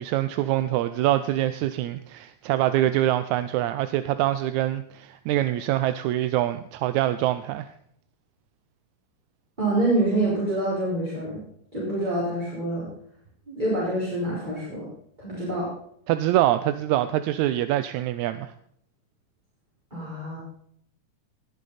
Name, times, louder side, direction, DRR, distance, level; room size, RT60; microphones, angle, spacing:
voice 1, 0.0-7.7 16.1-18.5, right 13 dB, 80° right, 11 dB, 1.8 m, -24 dB
voice 2, 9.6-11.4 11.7-12.9 13.5-14.9 15.2-15.7 19.9-20.4, right 1 dB, 15° right, -8 dB, 4.6 m, -26 dB
20.0 x 8.3 x 4.1 m, 0.68 s
omnidirectional pair, 3.7 m